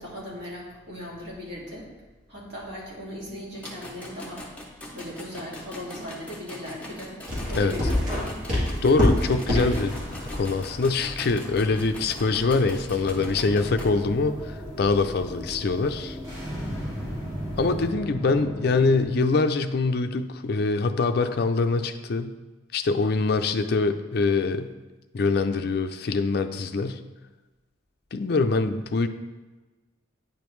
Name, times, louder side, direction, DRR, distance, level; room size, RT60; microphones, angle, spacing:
voice 1, 0.0-1.9 2.3-4.4 4.9-7.2 7.5-8.5, left 1 dB, 55° right, -5 dB, 2.2 m, -38 dB
sound 1, 3.5-13.9, left 1 dB, 5° left, 0.9 m, -42 dB
sound 2, 7.3-17.9, left 1 dB, 40° right, 2.2 m, -31 dB
voice 2, 8.8-16.2 17.6-22.3 22.7-24.7 25.1-27.0 28.1-29.1, left 3 dB, 50° left, 8 dB, 0.4 m, -24 dB
sound 3, 13.0-19.0, equal, 20° right, 2.3 m, -36 dB
9.1 x 5.1 x 3.1 m, 1.2 s
head